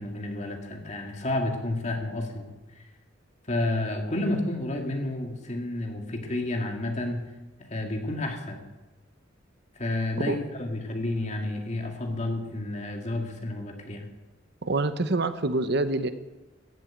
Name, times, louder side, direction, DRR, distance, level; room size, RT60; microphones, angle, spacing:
voice 1, 0.0-2.5 2.8-2.9 3.5-7.2 7.7-8.7 9.8-14.1, left 2 dB, 40° left, 3 dB, 2.2 m, -30 dB
voice 2, 14.6-16.1, right 2 dB, 60° right, 11 dB, 0.9 m, -26 dB
15.0 x 8.2 x 8.7 m, 1.1 s
head